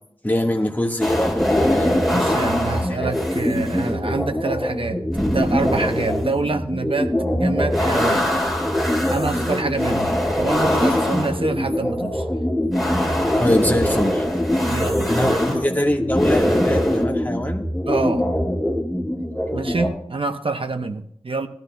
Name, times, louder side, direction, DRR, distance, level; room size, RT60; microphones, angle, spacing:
voice 1, 0.2-1.9 2.9-3.1 10.8-11.0 13.4-14.3 14.7-17.7, left 1 dB, 20° left, 2 dB, 1.5 m, -23 dB
sound 1, 1.0-19.9, left 1 dB, ahead, 3.9 m, -22 dB
voice 2, 2.1-5.0 5.3-8.5 9.1-12.2 14.7-15.4 17.9-18.3 19.5-21.5, right 3 dB, 65° right, 7 dB, 0.8 m, -26 dB
19.0 x 12.0 x 2.2 m, 0.68 s
wide cardioid pair, 55°, 10 cm